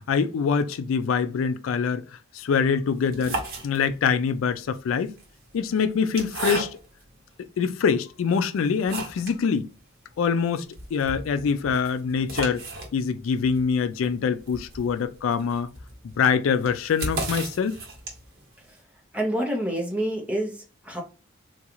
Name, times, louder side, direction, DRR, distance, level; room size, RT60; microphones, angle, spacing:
voice 1, 0.0-2.0 2.3-3.4 3.6-5.1 5.5-6.7 7.6-9.7 10.2-10.7 10.9-12.6 12.9-15.7 16.2-17.8, left 6 dB, 80° left, 0.3 m, -24 dB
sound 1, 2.9-4.2 5.0-7.1 7.7-7.8 8.3-9.4 9.7-9.8 10.1-10.2 10.5-18.4, right 2 dB, 50° right, 1.0 m, -35 dB
voice 2, 19.1-21.0, right 1 dB, 5° right, 0.8 m, -27 dB
3.7 x 2.3 x 2.9 m
head